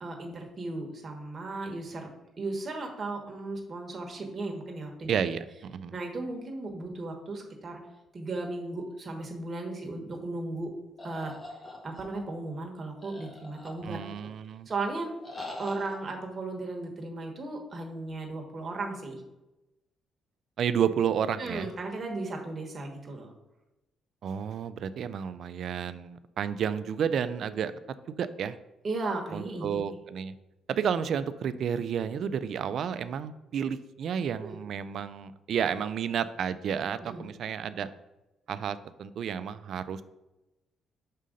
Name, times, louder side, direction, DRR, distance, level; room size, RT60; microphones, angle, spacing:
voice 1, 0.0-2.1 2.4-5.1 5.9-7.8 8.1-10.7 11.0-11.3 11.8-14.0 14.7-15.1 15.6-19.2 21.4-23.3 28.8-29.8 34.4-34.6 37.0-37.3, right 2 dB, 40° right, 1 dB, 1.2 m, -36 dB
voice 2, 5.1-5.9 13.8-14.7 20.6-21.7 24.2-27.7 28.1-28.6 29.3-30.3 30.7-37.9 38.5-40.0, right 8 dB, 65° right, 13 dB, 0.4 m, -31 dB
sound 1, 11.0-12.3 13.0-14.2 15.2-16.0, left 2 dB, 25° left, 1.3 m, -43 dB
5.5 x 3.7 x 5.1 m, 0.98 s
cardioid pair, 90°, 0 cm